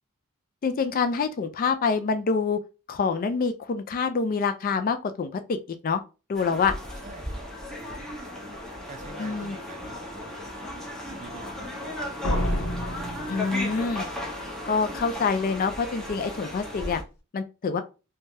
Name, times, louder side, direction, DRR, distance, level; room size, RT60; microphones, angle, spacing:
voice 1, 0.6-2.6 2.9-6.0 6.3-6.7 9.2-9.6 13.3-14.0 14.7-17.0 17.3-17.8, left 5 dB, 40° left, 0.3 m, -26 dB
sound 1, 6.4-17.0, left 1 dB, ahead, 0.8 m, -36 dB
voice 2, 7.0-7.5 7.8-8.1 8.9-10.4 11.2-12.1, right 3 dB, 35° right, 0.4 m, -46 dB
Slam, 12.2-14.1, equal, 75° left, 0.8 m, -29 dB
3.2 x 2.2 x 2.6 m
head